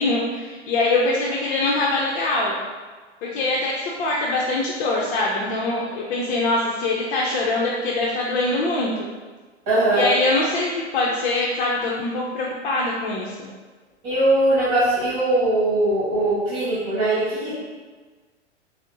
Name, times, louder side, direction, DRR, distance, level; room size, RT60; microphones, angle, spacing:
voice 1, 0.0-2.6 3.2-9.1 9.9-13.5, left 2 dB, 50° left, -4 dB, 0.6 m, -23 dB
voice 2, 9.7-10.1 14.0-17.5, right 1 dB, 40° right, -9 dB, 1.5 m, -20 dB
5.0 x 2.0 x 2.7 m, 1.4 s
hypercardioid pair, 120°, 35 cm